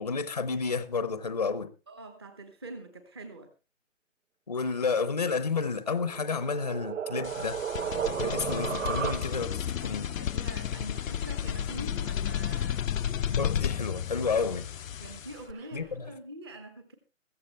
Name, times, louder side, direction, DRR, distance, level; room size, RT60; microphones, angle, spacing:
voice 1, 0.0-1.7 4.5-7.6 8.2-10.1 13.3-14.7 15.7-16.1, left 4 dB, 30° left, 0.7 m, -31 dB
voice 2, 1.9-3.5 9.8-12.8 15.0-16.9, right 1 dB, 20° right, 1.0 m, -45 dB
sound 1, 5.9-9.7, right 8 dB, 70° right, 0.7 m, -33 dB
sound 2, 7.2-15.5, left 9 dB, 80° left, 0.6 m, -32 dB
Bird, 9.6-16.0, right 5 dB, 50° right, 5.6 m, -58 dB
15.5 x 14.5 x 3.2 m
hypercardioid pair, 175°, 39 cm